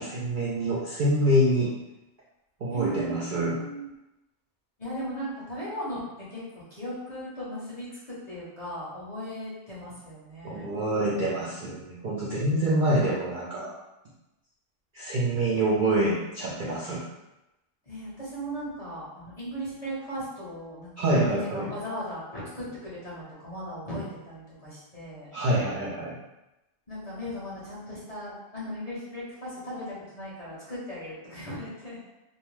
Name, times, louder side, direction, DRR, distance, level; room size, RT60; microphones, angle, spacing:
voice 1, 0.0-1.7 2.6-3.6 10.4-13.7 14.9-17.0 21.0-21.7 25.3-26.2, right 1 dB, 65° right, -5 dB, 0.5 m, -26 dB
voice 2, 2.7-3.9 4.8-6.0 6.3-6.4 6.7-10.7 17.9-25.3 26.9-32.0, equal, 35° left, -9 dB, 0.7 m, -37 dB
2.6 x 2.0 x 3.1 m, 0.96 s
omnidirectional pair, 1.3 m